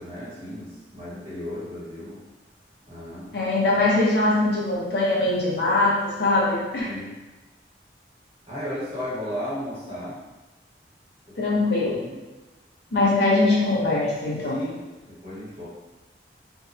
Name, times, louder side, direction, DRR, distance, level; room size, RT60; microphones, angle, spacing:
voice 1, 0.0-2.2 2.9-3.3 6.9-7.1 8.5-10.2 11.4-12.1 14.5-15.7, equal, 35° right, -10 dB, 1.2 m, -35 dB
voice 2, 3.3-6.9 11.4-12.0 12.9-14.5, left 2 dB, 65° left, -6 dB, 0.7 m, -22 dB
2.6 x 2.2 x 2.5 m, 1.1 s
head